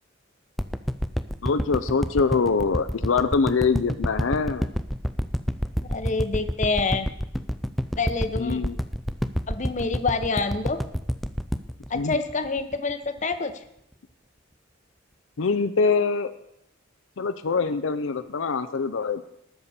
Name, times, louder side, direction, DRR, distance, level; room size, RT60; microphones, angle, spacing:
sound 1, 0.6-12.9 13.3-13.4, equal, ahead, 0.4 m, -28 dB
voice 1, 1.4-4.7 8.4-8.8 11.9-12.2 15.4-16.3 17.2-19.2, left 4 dB, 75° left, 10 dB, 0.5 m, -24 dB
voice 2, 5.8-7.1 8.0-8.6 9.5-10.8 11.9-13.6, left 3 dB, 40° left, 9 dB, 0.8 m, -27 dB
19.0 x 6.9 x 4.3 m, 0.78 s
head